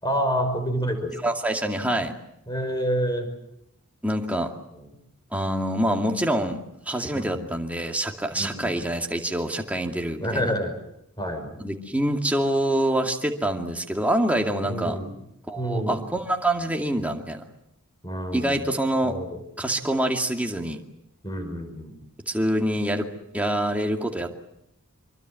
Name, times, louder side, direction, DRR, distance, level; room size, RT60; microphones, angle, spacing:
voice 1, 0.0-1.2 2.5-3.3 4.7-4.9 7.1-7.5 8.4-8.8 10.2-10.8 11.2-11.6 14.6-15.2 15.6-16.1 18.0-18.6 19.0-19.4 21.2-22.0, equal, 20° left, 6 dB, 5.4 m, -28 dB
voice 2, 1.2-2.1 4.0-4.5 5.3-10.5 11.6-15.0 15.5-17.4 18.3-19.1 19.6-20.8 22.3-23.1 23.3-24.3, right 1 dB, 5° right, 2 dB, 2.3 m, -26 dB
25.5 x 23.0 x 7.7 m, 0.80 s
head